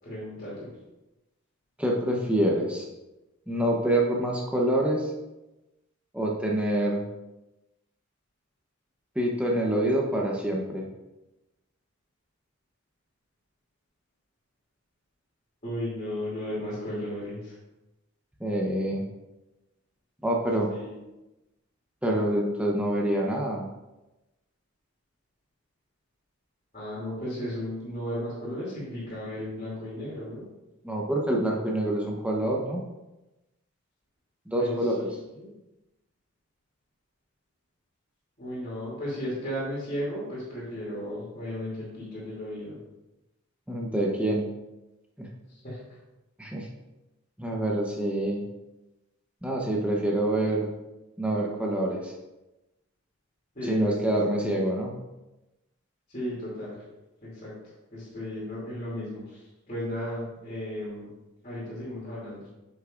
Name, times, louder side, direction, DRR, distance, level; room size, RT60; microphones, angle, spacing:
voice 1, 0.0-0.7 15.6-17.6 20.7-21.0 26.7-30.4 34.6-34.8 35.4-35.5 38.4-42.8 45.5-46.0 53.5-54.1 56.1-56.8 57.2-57.5 57.9-61.1 61.4-62.5, equal, 35° left, -11 dB, 2.8 m, -35 dB
voice 2, 1.8-2.9 3.5-5.1 6.1-7.1 9.1-10.9 18.4-19.1 20.2-20.7 22.0-23.7 30.8-32.8 34.5-35.1 43.7-44.5 45.2-45.3 46.4-46.7 47.4-48.4 49.4-50.7 51.2-52.1 53.6-55.0, right 1 dB, 5° right, -2 dB, 0.9 m, -26 dB
9.5 x 6.8 x 2.5 m, 1.0 s
head